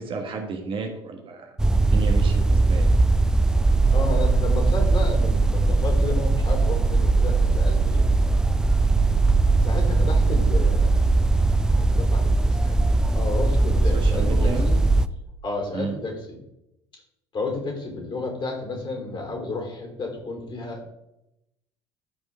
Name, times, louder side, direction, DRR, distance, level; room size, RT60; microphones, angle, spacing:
voice 1, 0.0-2.9 13.9-14.7 15.7-15.9, right 4 dB, 40° right, 2 dB, 1.5 m, -32 dB
sound 1, 1.6-15.1, right 3 dB, 5° right, 0.4 m, -20 dB
voice 2, 3.9-8.1 9.6-10.9 11.8-12.8 13.1-14.8 15.4-16.4 17.3-20.9, left 2 dB, 35° left, 1 dB, 3.9 m, -32 dB
13.0 x 5.3 x 3.7 m, 0.85 s
figure-of-eight pair, 60°, 14 cm